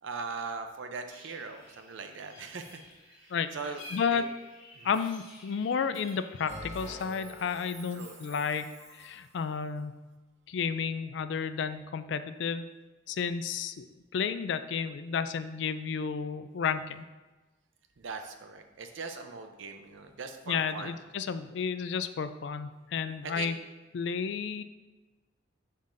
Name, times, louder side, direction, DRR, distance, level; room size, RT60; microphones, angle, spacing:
voice 1, 0.0-2.8 3.1-3.8 4.1-4.2 4.7-4.9 7.9-8.4 18.0-21.0 23.2-23.5, right 4 dB, 75° right, 6 dB, 0.6 m, -40 dB
sound 1, 1.1-6.4, left 2 dB, 45° left, 2.0 m, -51 dB
sound 2, 2.6-2.9 3.8-4.0 4.9-5.1 5.9-6.2 6.7-6.9 8.0-8.2, left 1 dB, ahead, 1.5 m, -58 dB
voice 2, 3.9-4.3 4.8-10.0 10.5-12.7 13.1-13.9 14.1-17.0 20.5-23.6 23.9-24.6, left 6 dB, 65° left, 11 dB, 0.3 m, -32 dB
Bell, 6.5-9.3, equal, 35° right, 1.5 m, -46 dB
7.2 x 5.6 x 2.6 m, 1.2 s
head